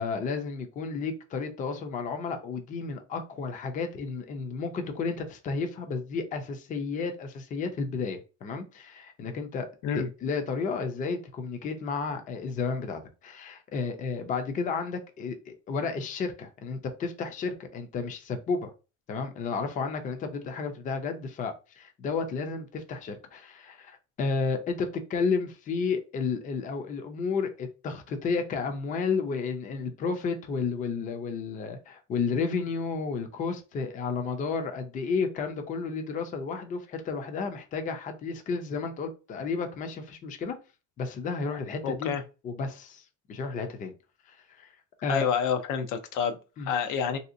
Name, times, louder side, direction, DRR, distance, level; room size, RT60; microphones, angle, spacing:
voice 1, 0.0-9.7 9.9-18.7 19.1-40.6 41.0-42.1 42.4-43.0 43.3-43.9 44.3-44.7 45.0-45.3 46.6-46.7, left 4 dB, 25° left, 0.4 m, -32 dB
voice 2, 41.8-42.2 45.1-47.2, left 7 dB, 85° left, 0.6 m, -28 dB
3.2 x 2.7 x 2.5 m
cardioid pair, 160°, 30 cm